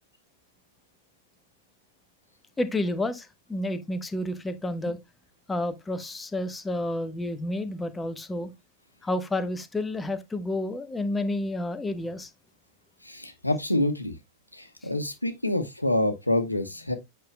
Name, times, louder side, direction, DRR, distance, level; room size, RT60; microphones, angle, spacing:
voice 1, 2.6-5.0 5.5-8.5 9.0-12.3 14.8-14.9, left 1 dB, 10° left, 1.0 m, -30 dB
voice 2, 13.0-14.1 14.5-17.0, left 1 dB, 85° left, 1.0 m, -27 dB
8.7 x 5.6 x 2.2 m
figure-of-eight pair, 90°, 0 cm